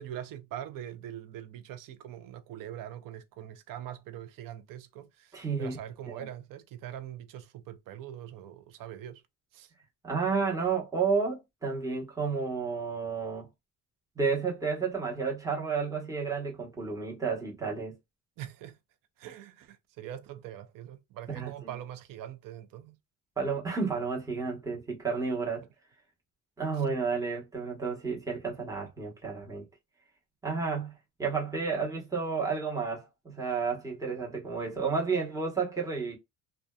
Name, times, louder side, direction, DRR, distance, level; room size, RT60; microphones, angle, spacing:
voice 1, 0.0-9.2 9.5-9.7 18.4-18.8 19.2-23.0 26.7-26.8, right 11 dB, 65° right, 0.5 m, -43 dB
voice 2, 5.3-5.8 6.2-6.3 10.0-13.5 14.2-17.9 21.3-21.7 23.4-25.7 26.6-29.6 30.4-30.9 31.2-36.2, right 5 dB, 10° right, 1.0 m, -31 dB
2.5 x 2.2 x 2.2 m
cardioid pair, 105°, 35 cm